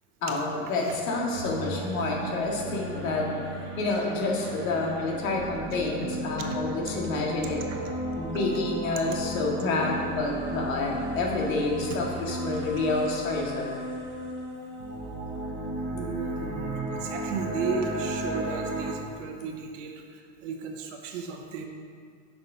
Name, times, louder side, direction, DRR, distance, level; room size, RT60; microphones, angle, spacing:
voice 1, 0.2-3.3 3.8-7.6 8.2-13.7, left 3 dB, 80° left, -2 dB, 1.9 m, -28 dB
sound 1, 1.3-18.9, right 1 dB, 25° right, 1.5 m, -34 dB
voice 2, 15.9-21.7, right 5 dB, 65° right, 3 dB, 1.0 m, -35 dB
6.7 x 5.9 x 5.0 m, 2.1 s
supercardioid pair, 175°, 40 cm